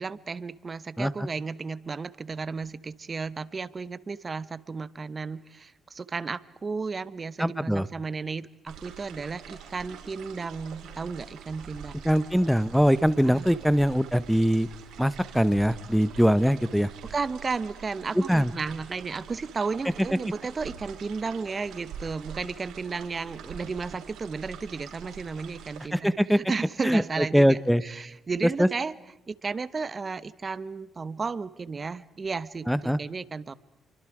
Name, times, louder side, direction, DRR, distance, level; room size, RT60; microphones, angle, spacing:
voice 1, 0.0-11.9 13.2-13.5 17.1-28.9 29.3-33.5, right 4 dB, 35° right, 17 dB, 1.0 m, -34 dB
voice 2, 7.4-7.9 12.0-14.7 15.0-16.9 18.3-18.5 25.9-26.4 26.8-27.0 27.3-27.8 28.4-28.7 32.7-33.0, equal, ahead, 15 dB, 0.8 m, -22 dB
sound 1, 8.7-25.9, right 7 dB, 80° right, 5.1 m, -45 dB
29.5 x 24.0 x 4.9 m, 0.99 s
cardioid pair, 90°, 0 cm